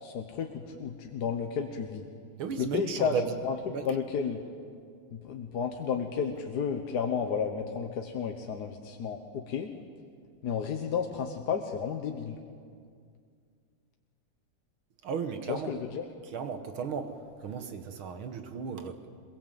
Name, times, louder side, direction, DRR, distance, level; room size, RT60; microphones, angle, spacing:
voice 1, 0.0-2.0 2.6-3.1 3.4-4.4 5.1-9.7 10.4-12.4 15.5-16.0, left 6 dB, 55° left, 4 dB, 1.4 m, -32 dB
voice 2, 2.4-3.4 3.7-3.9 15.0-15.7 16.3-19.1, right 6 dB, 70° right, 8 dB, 2.0 m, -35 dB
22.5 x 22.0 x 7.5 m, 2.2 s
omnidirectional pair, 2.4 m